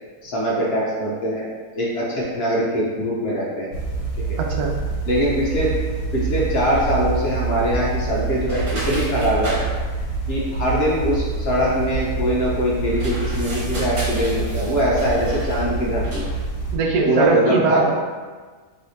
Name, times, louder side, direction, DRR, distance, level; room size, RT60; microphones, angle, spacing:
voice 1, 0.2-1.5 1.7-3.7 4.2-4.4 5.1-5.7 6.1-9.6 10.3-16.2 17.0-17.9, equal, 50° left, -5 dB, 0.8 m, -22 dB
sound 1, 3.7-16.8, right 3 dB, 80° left, 1.3 m, -26 dB
voice 2, 4.4-4.7 16.7-17.9, right 3 dB, 90° right, 0 dB, 1.2 m, -20 dB
sound 2, 8.4-9.6 12.9-15.7 16.0-16.4, right 1 dB, 60° right, 1.5 m, -33 dB
3.3 x 3.2 x 4.0 m, 1.4 s
omnidirectional pair, 1.6 m